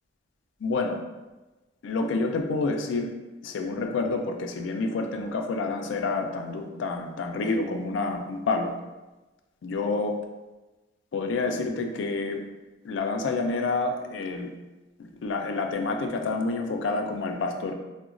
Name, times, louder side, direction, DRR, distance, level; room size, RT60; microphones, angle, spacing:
voice 1, 0.6-1.0 1.8-3.1 3.4-8.7 9.6-10.2 11.1-12.4 12.8-14.5 15.0-17.7, left 3 dB, 85° left, 4 dB, 0.4 m, -28 dB
3.8 x 2.1 x 2.4 m, 1.1 s
head